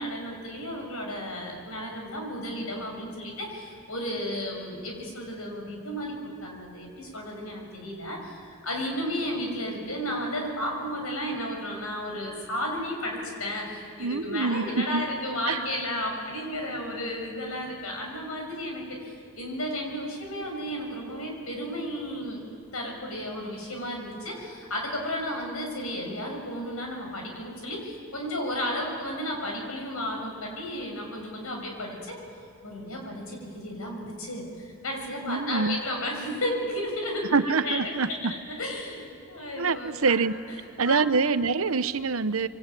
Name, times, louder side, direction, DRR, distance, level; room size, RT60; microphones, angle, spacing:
voice 1, 0.0-22.4 22.7-32.2 32.6-38.2 38.5-40.1 40.9-41.0, equal, 85° left, 1 dB, 6.8 m, -33 dB
voice 2, 14.0-15.0 15.5-15.6 35.2-35.8 37.3-38.3 39.6-40.3 40.8-42.5, right 4 dB, 75° right, 12 dB, 0.9 m, -25 dB
27.0 x 24.0 x 9.1 m, 2.3 s
head